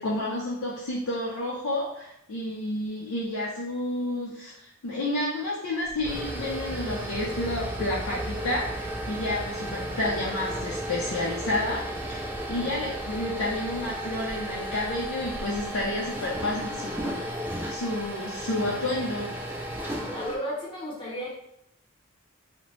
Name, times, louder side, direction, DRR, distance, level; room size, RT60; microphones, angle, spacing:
voice 1, 0.0-12.2 12.5-17.3 17.7-19.4, left 1 dB, 90° left, -4 dB, 0.5 m, -30 dB
sound 1, 5.8-20.4, right 1 dB, 10° right, 0.3 m, -34 dB
voice 2, 20.1-21.3, equal, 25° left, -5 dB, 0.8 m, -34 dB
2.8 x 2.1 x 3.0 m, 0.76 s
head